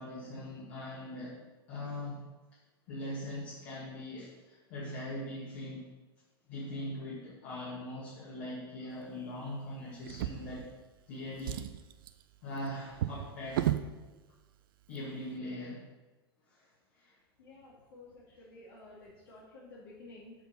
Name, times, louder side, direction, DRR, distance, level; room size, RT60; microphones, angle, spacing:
voice 1, 0.0-1.4 1.7-2.2 2.9-5.8 6.5-10.6 11.1-11.6 12.4-13.7 14.9-15.8 16.5-16.6 17.0-17.1, left 1 dB, 50° left, -6 dB, 2.1 m, -41 dB
Drawer open or close, 10.0-11.0 11.3-13.9 14.8-15.0 15.3-15.4, right 12 dB, 60° right, 0.5 m, -35 dB
voice 2, 17.4-18.1 18.4-20.3, left 2 dB, 65° left, -7 dB, 2.4 m, -52 dB
7.3 x 6.0 x 5.5 m, 1.2 s
figure-of-eight pair, 85°, 13 cm